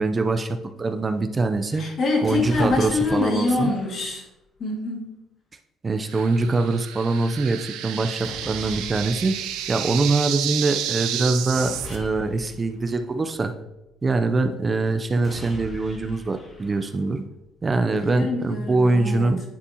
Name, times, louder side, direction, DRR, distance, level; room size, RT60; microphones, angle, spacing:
voice 1, 0.0-1.9 2.2-3.7 5.8-9.4 9.7-13.5 14.0-17.2 17.6-19.4, right 3 dB, 30° right, 8 dB, 0.5 m, -23 dB
voice 2, 1.7-4.2 4.6-5.1 17.9-19.3, left 3 dB, 55° left, 0 dB, 1.9 m, -25 dB
sound 1, 2.2-4.3 8.2-10.3 11.5-13.6 15.2-17.3, left 1 dB, 25° left, 2.4 m, -42 dB
sound 2, 6.1-12.0, right 10 dB, 85° right, 0.5 m, -31 dB
9.7 x 4.3 x 2.8 m, 0.95 s
supercardioid pair, 75°, 0 cm